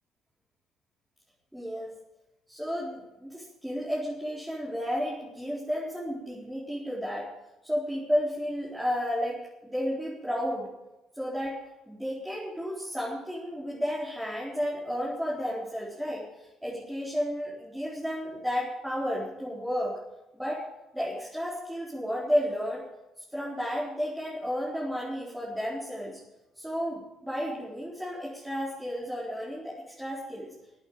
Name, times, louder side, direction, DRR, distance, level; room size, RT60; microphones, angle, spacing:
voice 1, 1.5-2.0 2.5-7.3 7.6-10.7 11.1-19.9 20.3-20.7 20.9-22.8 23.3-26.2 26.5-30.5, equal, 5° right, -6 dB, 4.4 m, -32 dB
14.5 x 8.8 x 9.1 m, 0.98 s
figure-of-eight pair, 50°, 0 cm